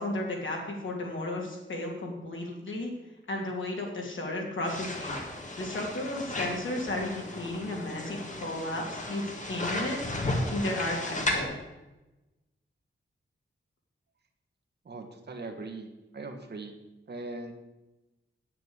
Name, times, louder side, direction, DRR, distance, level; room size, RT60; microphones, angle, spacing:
voice 1, 0.0-2.9 3.3-5.2 5.6-10.0 10.5-11.5, left 1 dB, 65° left, 0 dB, 2.8 m, -34 dB
sound 1, 4.7-11.4, left 1 dB, 35° left, 1.7 m, -34 dB
voice 2, 14.8-16.7 17.1-17.5, right 3 dB, 50° right, 4 dB, 1.5 m, -40 dB
9.0 x 7.7 x 8.0 m, 1.0 s
wide cardioid pair, 160°, 21 cm